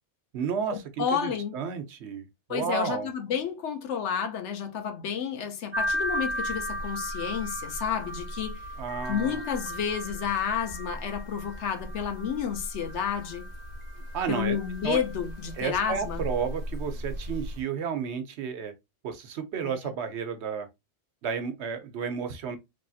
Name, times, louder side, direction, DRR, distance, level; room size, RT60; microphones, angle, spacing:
voice 1, 0.3-2.2 2.5-3.1 8.8-9.4 14.1-14.6 14.8-15.0 15.6-18.7 19.0-20.7 21.2-22.6, right 6 dB, 75° right, 1.0 m, -32 dB
voice 2, 1.0-1.5 2.5-8.6 9.1-13.4 14.3-16.2 19.6-19.7, left 7 dB, 85° left, 1.0 m, -30 dB
sound 1, 5.7-17.6, equal, 40° right, 0.9 m, -36 dB
3.4 x 2.6 x 2.4 m
omnidirectional pair, 1.2 m